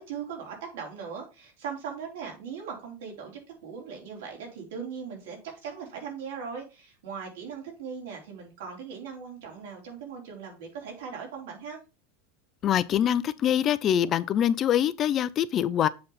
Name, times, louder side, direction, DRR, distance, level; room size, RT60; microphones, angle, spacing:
voice 1, 0.0-11.8, right 6 dB, 80° right, 3.9 m, -39 dB
voice 2, 12.6-15.9, left 10 dB, 35° left, 0.5 m, -24 dB
7.7 x 4.0 x 5.6 m
supercardioid pair, 120°, 0 cm